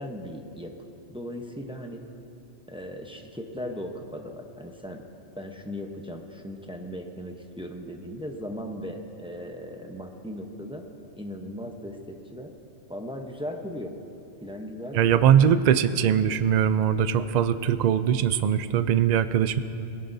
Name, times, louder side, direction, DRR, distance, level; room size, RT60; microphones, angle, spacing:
voice 1, 0.0-2.0 2.7-5.0 5.4-10.9 11.2-12.6 12.9-14.0 14.4-15.3, equal, 5° right, 3 dB, 0.7 m, -37 dB
voice 2, 14.9-19.6, right 9 dB, 55° right, 12 dB, 0.5 m, -21 dB
19.5 x 17.0 x 2.7 m, 2.7 s
omnidirectional pair, 1.1 m